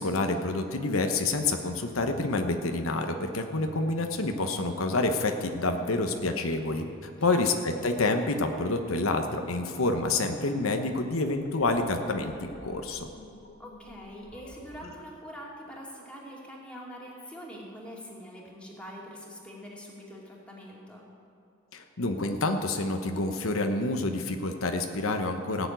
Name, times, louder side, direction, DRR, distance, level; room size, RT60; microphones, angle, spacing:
voice 1, 0.0-13.1 21.7-25.7, left 2 dB, 85° left, 5 dB, 1.0 m, -28 dB
sound 1, 1.2-15.0, left 1 dB, 50° left, 1.2 m, -49 dB
voice 2, 7.3-7.6 13.6-21.0, equal, 5° left, -4 dB, 2.4 m, -44 dB
16.0 x 7.1 x 9.3 m, 2.5 s
head